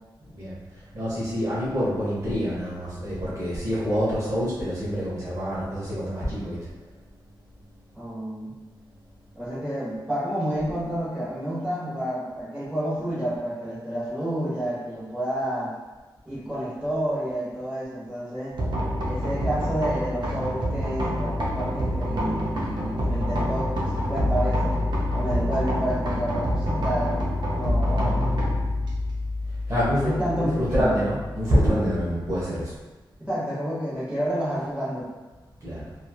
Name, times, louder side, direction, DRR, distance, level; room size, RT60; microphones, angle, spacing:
voice 1, 0.9-6.6 29.7-30.1 30.4-32.7 35.6-35.9, equal, 40° right, -10 dB, 0.9 m, -26 dB
voice 2, 7.9-8.6 9.3-15.7 16.2-18.6 19.0-24.8 25.1-27.2 27.4-28.4 30.0-31.0 33.2-35.1, right 1 dB, 10° right, -9 dB, 1.0 m, -30 dB
sound 1, 18.6-32.4, left 1 dB, 60° right, 0.6 m, -27 dB
3.1 x 2.3 x 2.3 m, 1.2 s
wide cardioid pair, 140°, 8 cm